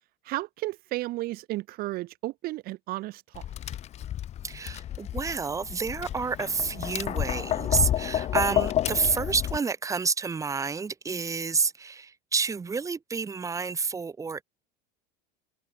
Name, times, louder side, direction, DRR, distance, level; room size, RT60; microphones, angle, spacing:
voice 1, 0.2-3.4, right 18 dB, 50° right, 4.7 m, -33 dB
Tap, 3.3-9.6, left 11 dB, 35° left, 2.4 m, -30 dB
voice 2, 4.4-14.4, right 5 dB, 15° right, 7.2 m, -29 dB
open air
cardioid pair, 155°, 20 cm